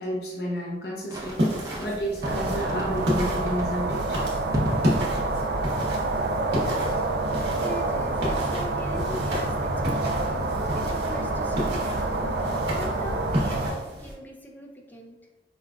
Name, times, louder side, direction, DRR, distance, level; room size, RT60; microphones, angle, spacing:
voice 1, 0.0-4.2, equal, 60° left, -4 dB, 0.6 m, -31 dB
sound 1, 1.1-1.9 2.2-3.1 3.5-3.8 4.5-5.0, equal, 20° right, 0.7 m, -31 dB
sound 2, 1.1-14.1, equal, 75° right, 1.1 m, -32 dB
sound 3, 2.2-13.7, right 2 dB, 60° right, 0.4 m, -27 dB
voice 2, 7.3-12.4 12.7-15.2, equal, 10° left, 1 dB, 0.4 m, -41 dB
5.1 x 2.3 x 2.3 m, 1.2 s
head